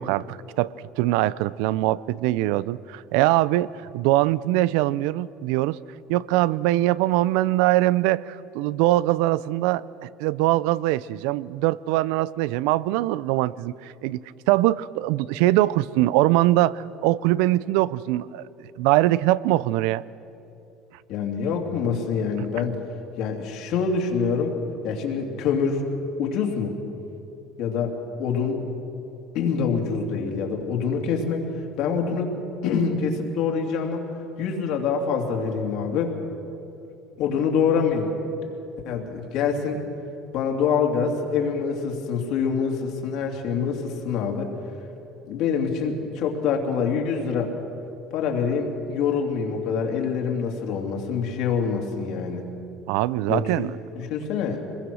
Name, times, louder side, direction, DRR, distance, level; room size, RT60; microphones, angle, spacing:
voice 1, 0.0-5.8 6.1-14.2 14.5-18.4 18.8-20.0 52.9-53.8, right 16 dB, 85° right, 20 dB, 0.5 m, -22 dB
voice 2, 21.1-22.8 23.2-24.6 24.8-25.8 26.2-26.7 27.6-28.6 29.3-31.4 31.8-32.4 32.6-34.0 34.4-36.1 37.2-38.1 38.8-39.8 40.3-44.5 45.3-47.5 48.1-52.4 53.3-53.7 53.9-54.7, left 6 dB, 60° left, 2 dB, 2.9 m, -25 dB
25.5 x 21.5 x 6.3 m, 2.8 s
cardioid pair, 165°, 0 cm